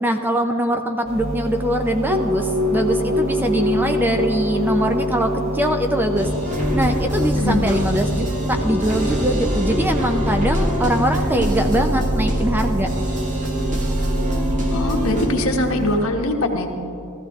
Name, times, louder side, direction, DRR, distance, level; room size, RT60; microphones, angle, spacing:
voice 1, 0.0-6.3 6.7-12.9, right 1 dB, 10° right, 5 dB, 0.5 m, -22 dB
sound 1, 1.0-16.0, right 1 dB, 60° right, 2.2 m, -28 dB
sound 2, 2.1-15.9, left 1 dB, 80° right, 1.6 m, -28 dB
sound 3, 6.2-15.3, equal, 35° right, 1.5 m, -24 dB
voice 2, 7.3-7.7 14.7-16.7, left 1 dB, 70° left, 3 dB, 1.3 m, -22 dB
15.0 x 14.0 x 3.6 m, 2.9 s
head